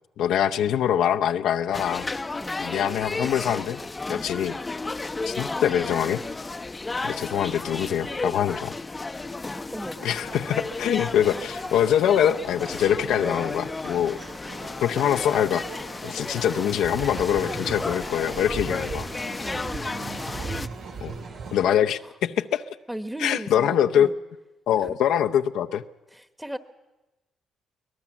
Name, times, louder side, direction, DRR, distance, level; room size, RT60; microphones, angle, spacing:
voice 1, 0.2-2.1 2.6-3.8 4.1-4.6 5.3-6.2 7.0-8.7 10.0-14.2 14.8-15.6 16.0-19.1 21.0-21.2 21.5-22.8 23.2-24.1 24.7-25.8, left 9 dB, 85° left, 7 dB, 0.7 m, -24 dB
sound 1, 1.7-20.7, left 3 dB, 20° left, 0.7 m, -33 dB
voice 2, 9.4-10.0 19.4-19.7 22.0-22.1 22.9-24.2 24.8-25.0 26.1-26.6, right 1 dB, 5° right, 11 dB, 1.2 m, -36 dB
sound 2, 9.9-21.5, right 4 dB, 90° right, 3.4 m, -44 dB
sound 3, 16.7-21.7, right 5 dB, 55° right, 5.8 m, -37 dB
24.0 x 18.0 x 7.2 m, 1.0 s
cardioid pair, 90°, 0 cm